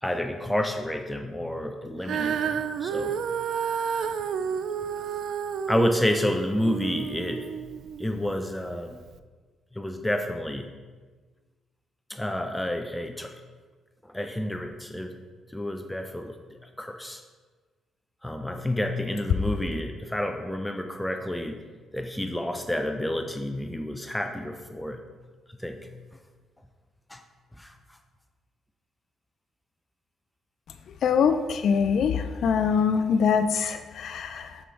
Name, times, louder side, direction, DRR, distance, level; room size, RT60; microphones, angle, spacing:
voice 1, 0.0-3.2 5.7-7.5 8.0-9.0 9.7-10.7 12.1-13.4 14.0-15.2 15.5-17.2 18.2-21.6 21.9-25.0 25.6-25.9 27.1-27.2 27.5-27.7, left 1 dB, 5° left, 5 dB, 0.5 m, -30 dB
Female singing, 2.0-8.4 9.1-9.2, right 7 dB, 70° right, 0.3 m, -31 dB
voice 2, 31.0-34.6, left 6 dB, 65° left, 8 dB, 0.3 m, -24 dB
6.1 x 4.8 x 4.5 m, 1.4 s
cardioid pair, 90°, 0 cm